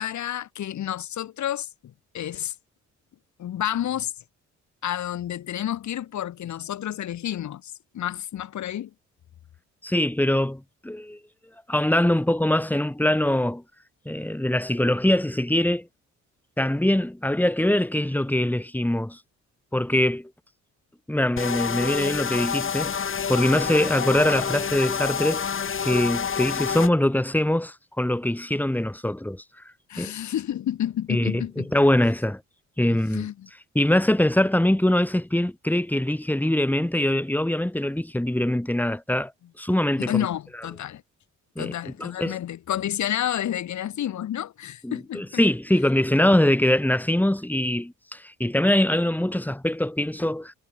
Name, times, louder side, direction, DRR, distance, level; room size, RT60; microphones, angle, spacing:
voice 1, 0.0-2.5 3.4-4.1 4.8-8.9 29.9-31.7 32.9-33.5 40.0-41.0 41.6-45.4, left 11 dB, 70° left, 3.8 m, -30 dB
voice 2, 9.8-11.2 11.7-13.6 14.1-15.9 16.6-19.2 19.7-20.3 21.1-23.0 23.3-25.5 25.8-29.4 30.0-30.1 31.1-32.4 32.8-33.3 33.7-39.3 39.6-40.2 41.6-41.7 42.0-42.4 44.8-50.5, left 1 dB, 5° left, 5.6 m, -23 dB
sound 1, 21.4-26.9, left 7 dB, 45° left, 2.8 m, -28 dB
cardioid pair, 90°, 30 cm